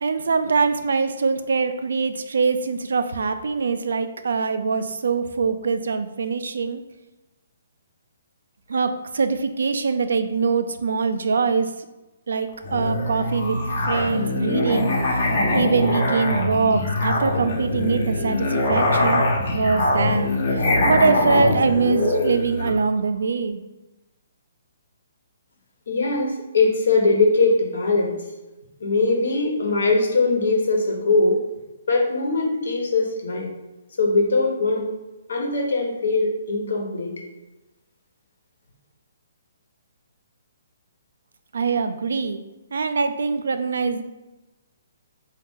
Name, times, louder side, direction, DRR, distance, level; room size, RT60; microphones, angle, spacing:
voice 1, 0.0-6.8 8.7-11.7 12.3-13.6 13.9-19.2 19.5-23.6 41.5-42.4 42.7-44.0, right 4 dB, 80° right, 9 dB, 0.4 m, -23 dB
Musical instrument, 12.6-22.8, left 2 dB, 55° left, 1.1 m, -23 dB
voice 2, 25.9-28.1 28.8-31.4 31.9-33.5 34.0-34.9 35.3-37.1, left 3 dB, 75° left, 1 dB, 1.2 m, -21 dB
4.1 x 2.7 x 3.7 m, 1.0 s
hypercardioid pair, 160°, 0 cm